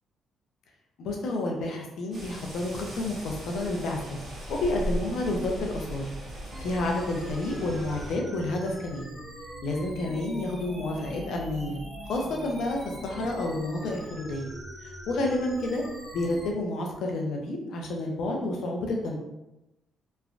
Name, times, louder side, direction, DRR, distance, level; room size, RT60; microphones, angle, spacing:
voice 1, 1.0-4.2 4.5-6.1 6.6-9.1 9.6-11.8 12.1-14.5 14.8-15.8 16.1-19.2, left 2 dB, 75° left, 1 dB, 0.6 m, -30 dB
sound 1, 2.1-8.2, equal, 40° right, 1.3 m, -38 dB
sound 2, 6.5-16.5, right 1 dB, 25° right, 0.8 m, -42 dB
3.1 x 2.2 x 2.5 m, 0.94 s
cardioid pair, 90°, 0 cm